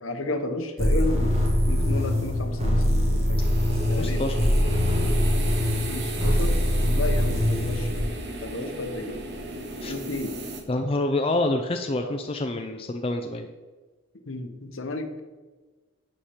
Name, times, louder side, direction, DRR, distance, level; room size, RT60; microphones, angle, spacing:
voice 1, 0.0-1.3 1.7-3.4 3.9-4.3 5.7-6.6 6.9-7.9 8.4-9.2 9.9-10.4 12.0-12.2 14.3-15.2, left 2 dB, 70° left, 7 dB, 0.9 m, -32 dB
sound 1, 0.8-8.0, left 1 dB, 30° right, 1.7 m, -23 dB
sound 2, 3.4-10.6, right 1 dB, 50° right, 1.1 m, -35 dB
voice 2, 4.0-4.5 9.8-9.9 10.7-13.5, left 2 dB, 25° left, 5 dB, 0.4 m, -27 dB
10.5 x 4.4 x 5.0 m, 1.3 s
head